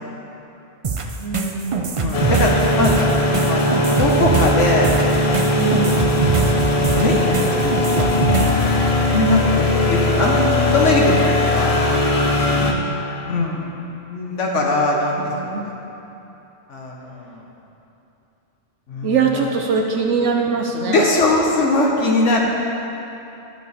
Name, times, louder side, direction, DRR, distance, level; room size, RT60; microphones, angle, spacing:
sound 1, 0.8-8.7, right 5 dB, 50° right, 0.3 m, -23 dB
voice 1, 1.2-2.2 5.5-6.4 12.6-13.0 14.9-15.7 19.0-21.0, right 5 dB, 70° right, 2 dB, 0.9 m, -23 dB
voice 2, 2.0-3.0 3.4-3.6 4.0-5.0 5.8-6.0 6.9-11.7 13.3-13.7 14.0-15.7 16.7-17.4 18.9-19.2 20.8-22.4, left 2 dB, 70° left, -1 dB, 1.3 m, -21 dB
sound 2, 2.1-12.7, left 2 dB, 35° left, 0.7 m, -19 dB
12.0 x 6.7 x 4.2 m, 2.9 s
omnidirectional pair, 1.3 m